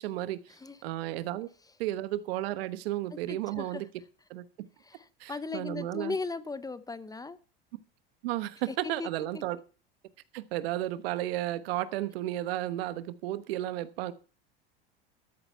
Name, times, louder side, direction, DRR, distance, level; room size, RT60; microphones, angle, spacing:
voice 1, 0.0-0.4 0.8-1.5 1.8-3.9 4.3-4.4 5.2-6.1 8.2-9.6 10.3-14.1, right 14 dB, 80° right, 15 dB, 1.1 m, -33 dB
voice 2, 3.3-3.8 4.8-7.4 8.7-9.4, left 4 dB, 10° left, 16 dB, 0.7 m, -38 dB
13.0 x 8.9 x 5.5 m, 0.36 s
supercardioid pair, 105°, 30 cm